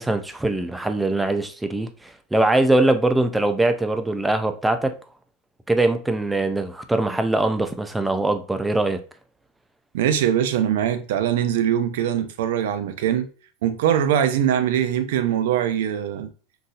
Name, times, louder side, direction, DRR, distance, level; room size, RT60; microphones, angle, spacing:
voice 1, 0.0-4.9 5.7-9.0, right 2 dB, 5° right, 0.3 m, -22 dB
voice 2, 9.9-13.3 13.6-16.3, right 10 dB, 85° right, 0.5 m, -22 dB
3.9 x 2.7 x 2.4 m
supercardioid pair, 155°, 0 cm